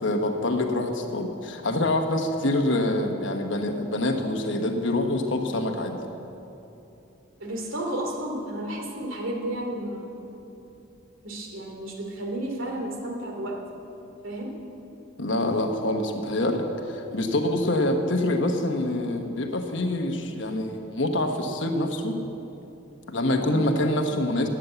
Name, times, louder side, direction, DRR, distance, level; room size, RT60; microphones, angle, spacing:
voice 1, 0.0-6.0 15.2-22.2 23.1-24.5, left 1 dB, 65° left, 4 dB, 1.1 m, -26 dB
voice 2, 7.4-10.3 11.2-13.5 14.2-14.5 23.4-23.6, right 1 dB, 75° right, 1 dB, 2.7 m, -32 dB
14.0 x 9.7 x 8.0 m, 2.9 s
head